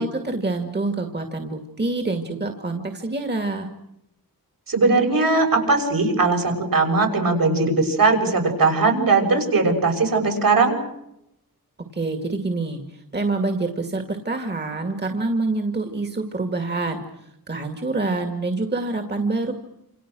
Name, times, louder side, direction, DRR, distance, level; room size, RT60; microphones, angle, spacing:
voice 1, 0.0-3.7 11.9-17.0 17.5-19.5, right 3 dB, 25° right, 5 dB, 2.4 m, -26 dB
voice 2, 4.7-10.8, right 3 dB, 65° right, 4 dB, 7.0 m, -19 dB
28.5 x 28.0 x 6.3 m, 0.82 s
wide cardioid pair, 175°, 37 cm